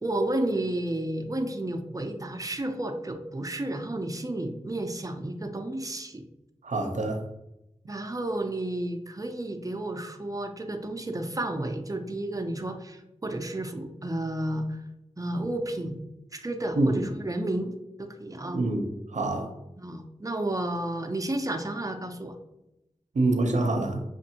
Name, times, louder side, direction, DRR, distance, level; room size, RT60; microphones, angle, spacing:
voice 1, 0.0-6.2 7.9-14.8 15.2-16.1 16.3-18.6 19.8-22.4, right 1 dB, 30° right, 5 dB, 0.6 m, -32 dB
voice 2, 6.6-7.2 16.7-17.0 18.5-19.6 23.1-24.0, right 2 dB, 75° right, 4 dB, 0.6 m, -26 dB
6.0 x 2.6 x 2.8 m, 0.90 s
cardioid pair, 45°, 12 cm